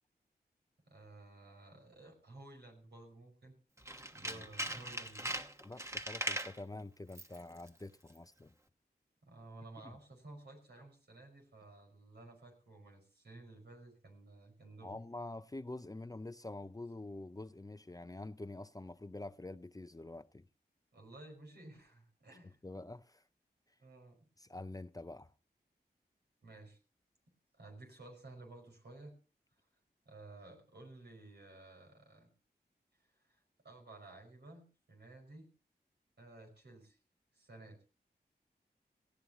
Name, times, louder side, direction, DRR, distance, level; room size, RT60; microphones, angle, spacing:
voice 1, 0.9-3.6 4.1-5.3 9.2-15.0 20.9-22.6 23.8-24.3 26.4-26.8 27.5-29.2 30.1-32.3 33.3-35.5 36.2-37.0 37.3-37.8, right 2 dB, 80° right, 5.4 m, -54 dB
Tools, 3.8-6.6 7.1-7.4 7.7-7.8, right 1 dB, 15° right, 1.2 m, -40 dB
voice 2, 5.6-8.5 9.8-9.9 14.8-20.5 22.4-23.2 24.4-25.3, left 2 dB, 20° left, 0.6 m, -46 dB
18.0 x 15.5 x 2.9 m
cardioid pair, 45°, 17 cm